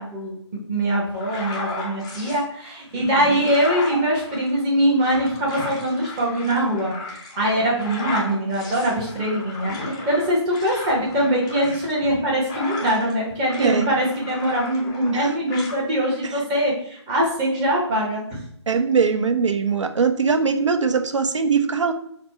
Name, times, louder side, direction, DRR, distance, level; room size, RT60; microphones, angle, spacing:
voice 1, 0.0-18.4, right 1 dB, 15° right, -3 dB, 0.8 m, -23 dB
sound 1, 1.1-2.4 2.9-13.2 13.4-15.2 15.5-15.8, left 2 dB, 15° left, 0.4 m, -34 dB
voice 2, 13.6-14.0 15.1-15.3 18.7-21.9, right 5 dB, 80° right, 7 dB, 0.6 m, -21 dB
4.2 x 2.0 x 4.1 m, 0.70 s
figure-of-eight pair, 160°, 15 cm